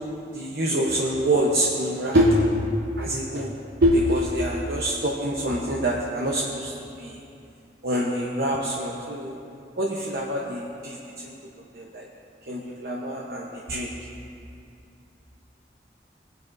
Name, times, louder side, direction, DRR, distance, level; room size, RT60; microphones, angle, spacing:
voice 1, 0.3-2.4 3.0-3.5 3.8-6.7 7.0-7.1 7.8-9.3 9.8-11.0 11.8-12.0 12.5-13.9, right 1 dB, 60° right, -2 dB, 0.9 m, -25 dB
19.5 x 10.0 x 2.6 m, 2.6 s
head